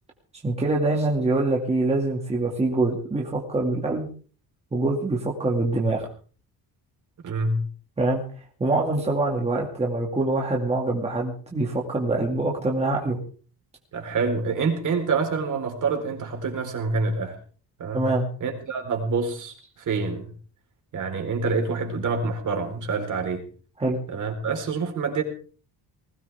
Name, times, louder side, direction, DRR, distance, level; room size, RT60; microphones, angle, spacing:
voice 1, 0.4-4.1 4.7-6.1 8.0-8.2 8.6-13.2 17.9-18.3 23.8-24.0, right 2 dB, 15° right, -1 dB, 2.3 m, -24 dB
voice 2, 7.2-7.6 13.9-17.4 17.8-18.1 18.4-20.3 20.9-23.5 24.1-25.2, right 4 dB, 50° right, 3 dB, 4.2 m, -27 dB
20.5 x 17.5 x 3.5 m, 0.41 s
cardioid pair, 175°, 39 cm